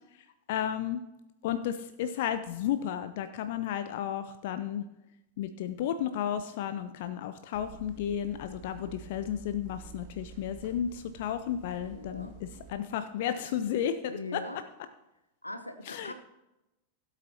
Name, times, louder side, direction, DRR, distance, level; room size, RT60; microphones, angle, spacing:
voice 1, 0.5-1.0 1.4-4.8 5.4-14.4 15.9-16.1, left 9 dB, 50° left, 10 dB, 0.5 m, -33 dB
sound 1, 7.5-12.7, right 7 dB, 45° right, 2.0 m, -50 dB
voice 2, 11.8-12.3 14.1-14.6 15.4-16.1, left 2 dB, 85° left, 9 dB, 0.9 m, -40 dB
16.5 x 8.0 x 2.9 m, 0.95 s
figure-of-eight pair, 90°, 0 cm